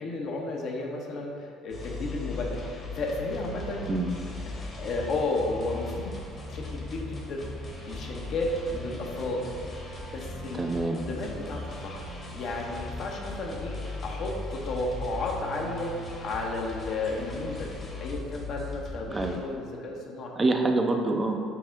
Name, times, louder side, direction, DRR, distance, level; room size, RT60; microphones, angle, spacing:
voice 1, 0.0-3.9 4.8-6.2 6.5-7.5 7.8-9.4 10.1-10.6 11.0-15.9 16.2-17.7 18.0-20.3, left 2 dB, 60° left, 0 dB, 0.6 m, -33 dB
sound 1, 1.7-19.4, left 2 dB, 40° left, 0.9 m, -38 dB
voice 2, 10.6-11.1 19.1-19.4 20.4-21.4, right 2 dB, 25° right, 3 dB, 0.4 m, -26 dB
5.7 x 2.1 x 3.6 m, 2.3 s
hypercardioid pair, 65°, 0 cm